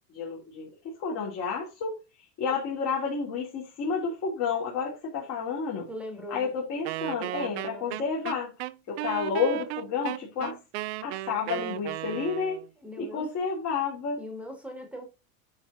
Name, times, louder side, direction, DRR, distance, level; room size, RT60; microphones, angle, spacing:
voice 1, 0.1-5.9 6.3-8.5 8.9-10.6 11.0-12.6 13.0-14.2, left 5 dB, 30° left, 3.2 m, -30 dB
voice 2, 5.9-6.5 7.4-8.0 12.8-13.3 14.2-15.1, left 1 dB, 5° right, 1.9 m, -40 dB
Wind instrument woodwind instrument, 6.8-12.7, right 17 dB, 45° right, 0.5 m, -35 dB
10.5 x 5.3 x 3.9 m
supercardioid pair, 160°, 48 cm